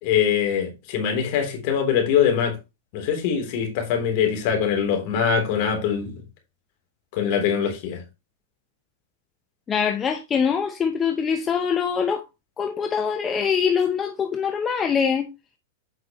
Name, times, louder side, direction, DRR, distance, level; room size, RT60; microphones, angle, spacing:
voice 1, 0.0-2.5 2.9-6.1 7.1-8.0, left 8 dB, 50° left, 3.3 m, -23 dB
voice 2, 9.7-12.2 12.6-15.3, left 6 dB, 20° left, 0.7 m, -23 dB
8.1 x 5.9 x 3.1 m
hypercardioid pair, 130°, 0 cm